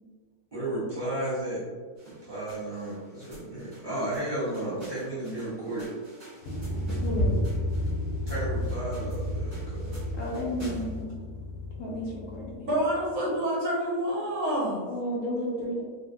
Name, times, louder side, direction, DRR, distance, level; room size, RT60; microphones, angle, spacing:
voice 1, 0.5-1.6 2.1-5.9 8.3-10.0, right 1 dB, 15° right, -11 dB, 1.1 m, -33 dB
sound 1, 2.0-11.0, right 1 dB, 40° right, 1.2 m, -38 dB
sound 2, 6.4-13.1, left 1 dB, 90° left, 1.4 m, -33 dB
voice 2, 7.0-7.4 10.1-11.1 11.8-12.7 14.8-15.8, equal, 70° left, -4 dB, 1.1 m, -32 dB
voice 3, 12.6-14.8, equal, 55° right, -8 dB, 1.6 m, -27 dB
3.5 x 2.4 x 2.7 m, 1.5 s
omnidirectional pair, 1.8 m